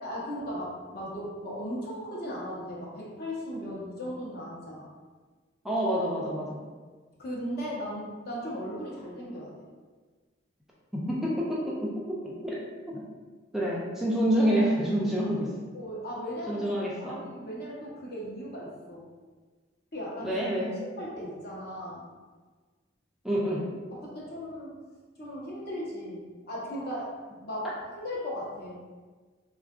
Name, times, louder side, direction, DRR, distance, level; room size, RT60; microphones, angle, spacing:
voice 1, 0.0-4.9 7.2-9.7 15.7-16.6 17.0-19.1 19.9-20.4 20.8-22.0 23.9-24.7 25.2-27.1 27.4-28.8, equal, 55° left, -5 dB, 0.8 m, -37 dB
voice 2, 5.6-6.6 10.9-12.6 12.9-13.0 13.5-15.5 16.5-17.2 20.2-20.8 23.2-23.6, equal, ahead, -6 dB, 0.3 m, -28 dB
3.5 x 2.4 x 2.3 m, 1.4 s
head